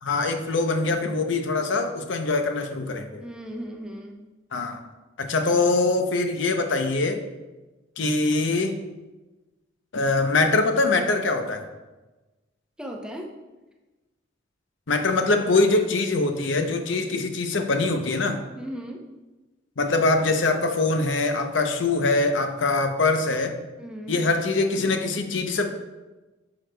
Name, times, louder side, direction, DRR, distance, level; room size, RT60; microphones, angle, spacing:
voice 1, 0.0-3.2 4.5-4.8 5.2-7.2 8.0-8.7 9.9-11.6 14.9-18.4 19.8-23.5 24.1-25.7, left 3 dB, 70° left, 6 dB, 0.7 m, -23 dB
voice 2, 3.2-4.2 12.8-13.3 18.5-19.2 23.8-24.2, equal, 5° right, 0 dB, 0.6 m, -36 dB
9.8 x 5.9 x 2.2 m, 1.1 s
head